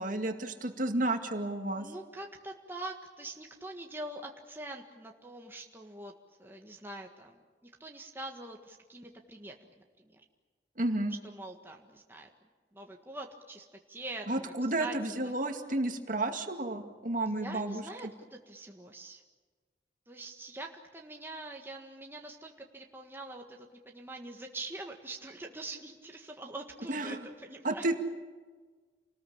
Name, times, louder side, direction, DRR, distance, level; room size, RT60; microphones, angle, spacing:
voice 1, 0.0-1.9 10.8-11.1 14.3-17.8 26.9-27.2 27.6-28.0, right 2 dB, 50° right, 5 dB, 2.2 m, -31 dB
voice 2, 1.7-6.1 6.4-7.3 7.6-10.2 11.2-12.3 12.7-15.3 17.4-19.2 20.1-27.8, right 2 dB, 15° right, 1 dB, 1.6 m, -44 dB
28.5 x 19.5 x 8.7 m, 1.4 s
head